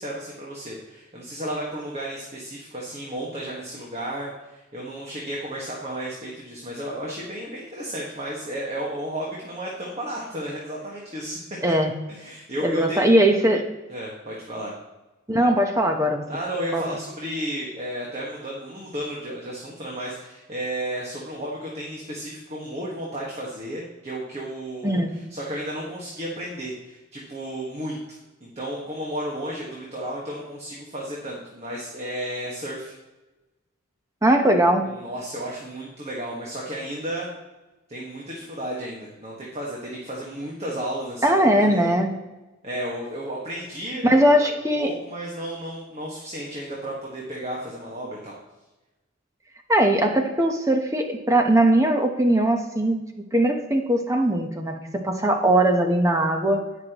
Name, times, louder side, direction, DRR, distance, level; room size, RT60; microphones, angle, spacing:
voice 1, 0.0-11.4 12.1-13.1 13.9-14.8 16.3-32.9 35.0-37.3 37.9-41.9 42.6-48.3, right 1 dB, 30° right, -3 dB, 1.6 m, -33 dB
voice 2, 11.6-11.9 12.6-13.7 15.3-16.2 16.7-16.9 24.8-25.1 34.2-34.9 41.2-42.1 44.0-44.9 49.7-53.0 53.3-54.8 55.0-56.6, right 1 dB, 15° right, 4 dB, 1.0 m, -20 dB
18.0 x 6.0 x 3.0 m, 1.1 s
head